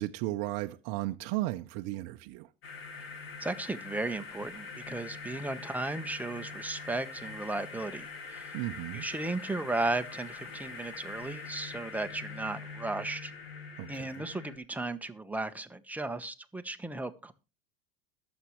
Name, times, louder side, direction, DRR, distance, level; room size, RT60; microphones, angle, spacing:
voice 1, 0.0-2.5 8.5-9.1 13.8-14.2, right 17 dB, 60° right, 0.7 m, -35 dB
sound 1, 2.6-14.6, left 4 dB, 90° left, 2.2 m, -44 dB
voice 2, 3.4-8.6 8.9-13.3 13.9-17.3, right 2 dB, 5° right, 1.1 m, -35 dB
21.5 x 7.3 x 3.1 m
hypercardioid pair, 100°, 29 cm